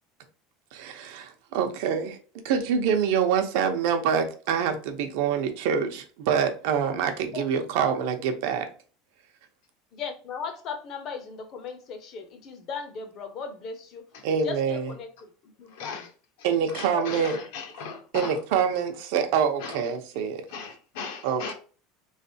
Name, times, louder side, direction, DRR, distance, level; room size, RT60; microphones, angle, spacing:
voice 1, 0.7-2.2 2.4-8.7 14.2-14.9 16.4-17.4 18.1-20.4 21.2-21.5, right 7 dB, 60° right, 0.7 m, -26 dB
voice 2, 9.9-14.0 14.4-15.1 15.6-16.0 16.9-17.3, left 6 dB, 35° left, 0.7 m, -37 dB
voice 3, 15.6-16.1 16.4-18.4 19.6-21.5, left 5 dB, 65° left, 1.0 m, -39 dB
3.8 x 3.2 x 2.7 m
cardioid pair, 180°, 0 cm